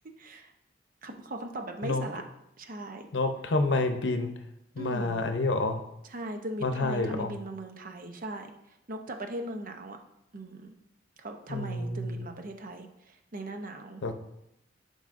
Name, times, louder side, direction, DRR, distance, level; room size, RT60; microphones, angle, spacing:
voice 1, 0.2-0.5 1.0-2.2 2.6-3.1 4.8-5.2 6.1-8.5 8.9-10.0 10.3-10.7 11.2-14.0, right 1 dB, 45° right, 5 dB, 0.7 m, -39 dB
voice 2, 3.1-4.3 4.8-5.8 6.6-7.3 11.5-12.3 14.0-14.1, left 2 dB, 70° left, 7 dB, 0.7 m, -28 dB
11.0 x 5.4 x 2.6 m, 0.82 s
head